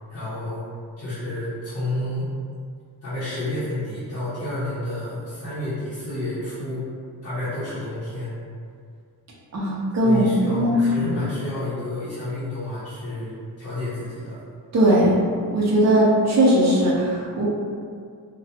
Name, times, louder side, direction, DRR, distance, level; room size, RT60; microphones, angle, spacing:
voice 1, 0.1-0.6 1.0-2.3 3.0-6.8 7.2-8.4 10.0-14.4, left 1 dB, 40° left, -14 dB, 0.7 m, -30 dB
voice 2, 9.5-11.1 14.7-15.1 15.5-17.4, right 1 dB, 40° right, -5 dB, 0.5 m, -19 dB
2.3 x 2.1 x 2.7 m, 2.2 s
wide cardioid pair, 175°, 41 cm